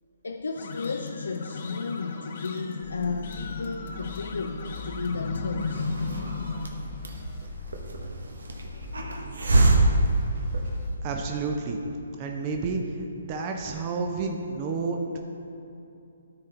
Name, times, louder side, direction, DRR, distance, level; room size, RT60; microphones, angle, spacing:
voice 1, 0.2-5.9 8.7-8.8 9.1-9.3, left 4 dB, 80° left, 4 dB, 0.4 m, -34 dB
sound 1, 0.6-6.7, left 4 dB, 55° left, 0.8 m, -35 dB
sound 2, 2.8-10.9, left 1 dB, 20° left, 0.6 m, -40 dB
Hiss, 5.6-11.1, right 2 dB, 80° right, 1.0 m, -26 dB
voice 2, 11.0-11.8 12.2-12.8 13.1-15.2, right 4 dB, 30° right, 3 dB, 0.7 m, -30 dB
13.0 x 4.4 x 3.8 m, 2.8 s
hypercardioid pair, 145°, 0 cm